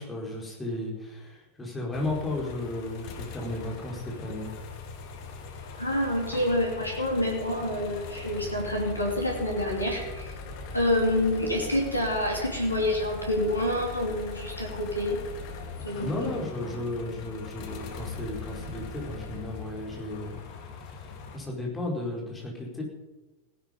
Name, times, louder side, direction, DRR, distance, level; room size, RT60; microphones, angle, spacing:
voice 1, 0.0-4.5 16.0-22.8, left 2 dB, 15° left, -1 dB, 4.7 m, -34 dB
sound 1, 1.9-21.4, left 4 dB, 45° left, 2.1 m, -40 dB
voice 2, 5.8-10.3 10.7-15.2 15.8-16.3, left 1 dB, 85° left, 1 dB, 2.8 m, -27 dB
17.0 x 11.0 x 5.3 m, 1.1 s
figure-of-eight pair, 90°, 0 cm